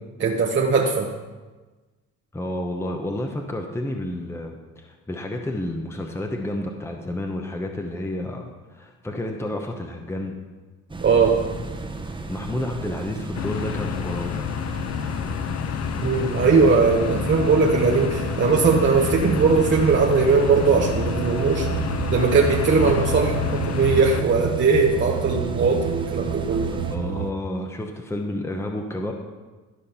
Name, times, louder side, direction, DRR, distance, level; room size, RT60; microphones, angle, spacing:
voice 1, 0.2-1.1 11.0-11.4 16.0-21.7 22.1-26.7, right 4 dB, 40° right, 0 dB, 1.0 m, -19 dB
voice 2, 2.3-10.4 12.3-14.4 26.9-29.1, left 1 dB, 10° left, 3 dB, 0.9 m, -30 dB
sound 1, 10.9-27.0, right 2 dB, 15° right, 1.1 m, -35 dB
sound 2, 13.3-24.2, left 9 dB, 55° left, 0.6 m, -29 dB
sound 3, 16.4-27.3, right 10 dB, 85° right, 0.5 m, -31 dB
13.0 x 5.1 x 5.6 m, 1.3 s
cardioid pair, 90°, 30 cm